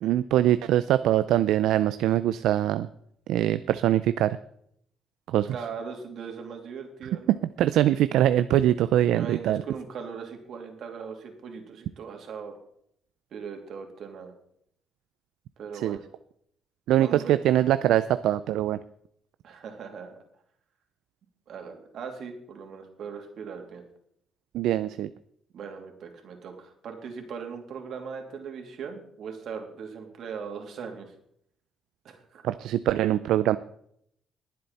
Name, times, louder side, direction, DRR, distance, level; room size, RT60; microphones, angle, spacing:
voice 1, 0.0-2.9 3.3-4.4 5.3-5.5 7.6-9.6 15.8-16.0 16.9-18.8 24.5-25.1 32.4-33.6, right 12 dB, 85° right, 13 dB, 0.4 m, -23 dB
voice 2, 5.5-7.4 9.1-12.6 13.3-14.3 15.6-16.0 17.0-17.3 19.4-20.2 21.5-23.8 25.5-31.1 32.0-32.4, right 6 dB, 65° right, 3 dB, 2.9 m, -39 dB
21.5 x 7.6 x 4.2 m, 0.70 s
cardioid pair, 95°, 0 cm